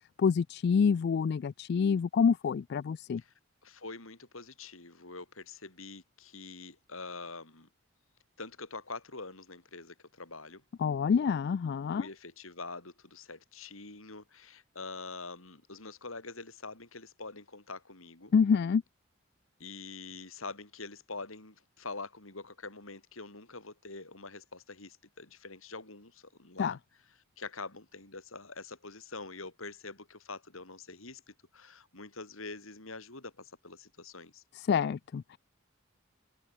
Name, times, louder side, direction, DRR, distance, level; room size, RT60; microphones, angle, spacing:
voice 1, 0.2-3.2 10.8-12.1 18.3-18.8 26.6-26.8 34.5-35.4, left 6 dB, 50° left, 0.3 m, -27 dB
voice 2, 3.6-7.7 8.4-10.6 11.9-18.3 19.6-26.8 27.4-34.4, left 3 dB, 80° left, 5.3 m, -45 dB
head